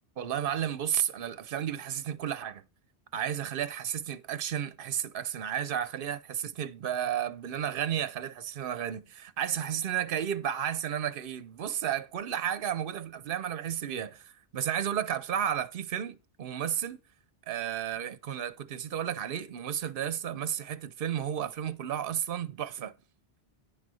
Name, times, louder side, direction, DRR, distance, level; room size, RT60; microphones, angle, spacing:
voice 1, 0.2-2.6 3.1-17.0 17.5-22.9, right 9 dB, 60° right, 0.9 m, -32 dB
9.7 x 4.1 x 6.2 m
omnidirectional pair, 1.1 m